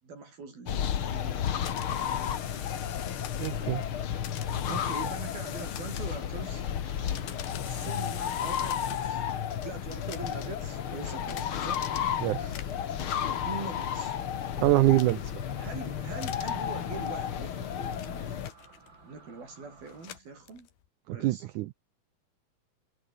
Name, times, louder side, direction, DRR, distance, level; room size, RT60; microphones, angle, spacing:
voice 1, 0.0-2.2 4.6-6.7 7.6-9.3 9.6-11.9 13.4-14.2 15.6-18.4 19.0-20.7 21.1-21.5, right 4 dB, 70° right, 9.4 m, -43 dB
sound 1, 0.7-18.5, left 9 dB, 55° left, 1.5 m, -32 dB
sound 2, 1.5-3.7 4.2-6.4 6.9-9.3 9.9-10.6 11.3-11.5 12.4-12.9 13.8-14.1 15.0-15.4 16.2-16.5 17.3-19.1 19.8-20.9, left 11 dB, 90° left, 3.9 m, -45 dB
sound 3, 2.4-20.2, right 4 dB, 30° right, 4.6 m, -55 dB
voice 2, 3.4-3.8 12.2-12.5 14.6-15.2 21.1-21.7, right 17 dB, 90° right, 1.7 m, -25 dB
omnidirectional pair, 4.4 m